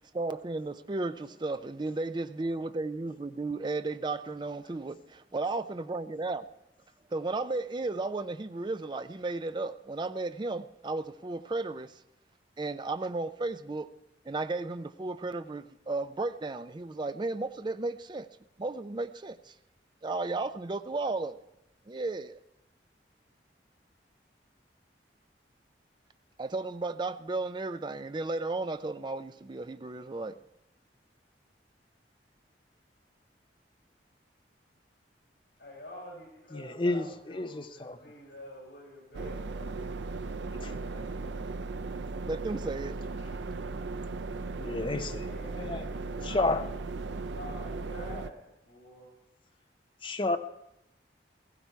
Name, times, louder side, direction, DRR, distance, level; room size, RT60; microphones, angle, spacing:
voice 1, 0.0-6.5 7.1-11.9 12.6-13.9 14.3-18.3 18.6-19.5 20.0-21.4 21.9-22.4 26.4-30.3 42.2-43.0, right 3 dB, 25° right, 0.4 m, -34 dB
voice 2, 35.6-39.9 40.5-41.2 44.1-46.7 47.0-49.1, left 1 dB, 70° left, 7.5 m, -48 dB
voice 3, 36.5-37.0 37.3-38.0 44.6-45.3 45.6-45.8 46.3-46.6 50.0-50.4, left 2 dB, 30° left, 0.7 m, -30 dB
sound 1, 39.1-48.3, right 3 dB, 90° right, 0.5 m, -37 dB
16.5 x 15.0 x 4.6 m
head